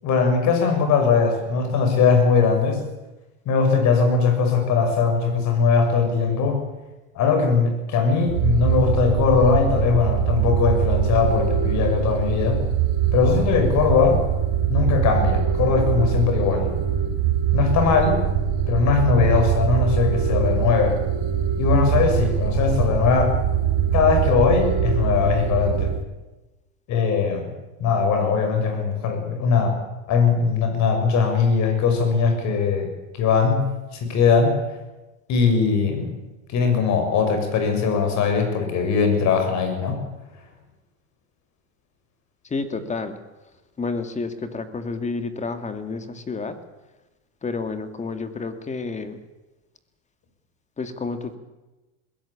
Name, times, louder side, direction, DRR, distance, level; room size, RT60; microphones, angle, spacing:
voice 1, 0.0-2.8 3.4-6.6 7.1-12.6 13.1-14.2 14.7-16.7 17.5-18.2 18.7-21.0 21.6-23.4 23.9-25.9 26.9-27.5 27.8-29.8 30.1-32.9 33.2-33.7 33.9-34.6 35.3-36.1 36.5-40.0, left 5 dB, 45° left, 6 dB, 6.5 m, -20 dB
sound 1, 8.3-26.0, right 8 dB, 50° right, 3.2 m, -23 dB
voice 2, 42.4-43.2 43.8-46.6 47.4-49.2 50.8-51.4, left 4 dB, 15° left, 9 dB, 2.3 m, -30 dB
20.5 x 17.0 x 8.7 m, 1.1 s
supercardioid pair, 120°, 40 cm